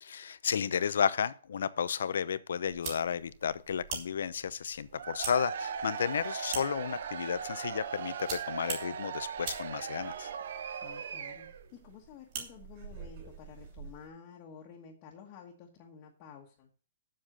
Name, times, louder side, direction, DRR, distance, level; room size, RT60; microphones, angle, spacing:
voice 1, 0.0-10.3, left 7 dB, 70° left, 0.7 m, -32 dB
sound 1, 2.7-14.1, right 6 dB, 30° right, 3.0 m, -45 dB
Cheering / Crowd, 4.9-11.7, right 7 dB, 60° right, 0.8 m, -39 dB
voice 2, 10.8-16.7, left 6 dB, 25° left, 1.3 m, -51 dB
7.6 x 7.3 x 6.6 m
hypercardioid pair, 170°, 0 cm